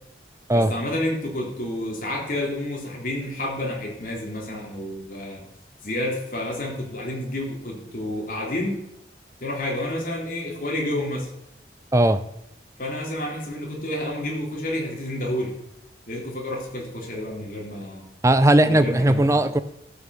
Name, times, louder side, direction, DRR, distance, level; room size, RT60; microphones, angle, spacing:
voice 1, 0.5-5.5 5.8-8.8 9.4-11.3 12.8-15.6 16.1-18.1 18.6-19.4, left 1 dB, 50° left, -1 dB, 3.3 m, -30 dB
voice 2, 11.9-12.2 18.2-19.6, right 1 dB, 15° right, 12 dB, 0.6 m, -18 dB
13.0 x 6.0 x 7.0 m, 0.80 s
head